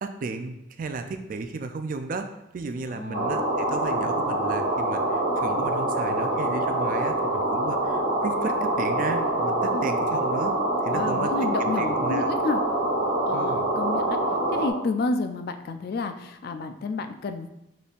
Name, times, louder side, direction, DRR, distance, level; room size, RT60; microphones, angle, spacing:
voice 1, 0.0-2.3 2.5-10.6 10.8-11.3 11.6-12.3 13.3-13.7, right 3 dB, 45° right, 7 dB, 0.3 m, -34 dB
voice 2, 2.9-3.4 9.7-9.9 10.9-12.6 13.3-14.2 14.5-17.5, left 3 dB, 50° left, 8 dB, 0.3 m, -30 dB
sound 1, 3.1-14.7, right 1 dB, 80° right, 1.2 m, -25 dB
5.2 x 4.2 x 2.4 m, 0.86 s
head